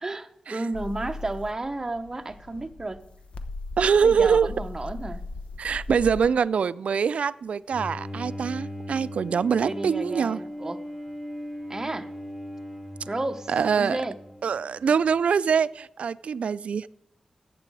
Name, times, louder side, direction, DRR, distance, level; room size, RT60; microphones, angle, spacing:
voice 1, 0.0-3.0 4.0-5.2 9.6-10.8 11.7-12.1 13.1-14.2, right 2 dB, 25° right, 7 dB, 0.8 m, -32 dB
sound 1, 0.7-6.3, left 3 dB, 65° left, 0.9 m, -38 dB
voice 2, 3.8-4.5 5.6-10.4 13.5-14.0 14.4-16.9, right 6 dB, 90° right, 17 dB, 0.3 m, -24 dB
Bowed string instrument, 7.7-14.9, equal, 5° right, 5.9 m, -38 dB
14.5 x 9.0 x 4.7 m, 0.80 s
wide cardioid pair, 115°, 2 cm